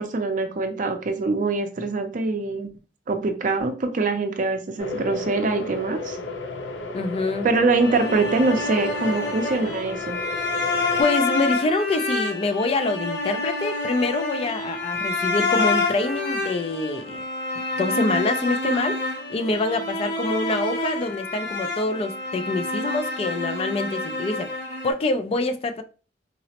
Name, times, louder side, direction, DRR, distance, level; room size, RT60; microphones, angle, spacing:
voice 1, 0.0-2.7 3.1-6.2 7.4-10.2, right 3 dB, 45° right, 0.5 m, -24 dB
sound 1, 4.8-11.0, left 3 dB, 85° left, 0.6 m, -33 dB
voice 2, 6.9-7.5 11.0-17.2 17.8-19.0 19.3-24.5 24.8-25.8, left 2 dB, 35° left, 0.3 m, -25 dB
sound 2, 7.8-24.9, left 2 dB, 65° left, 1.3 m, -28 dB
3.9 x 2.0 x 2.8 m
head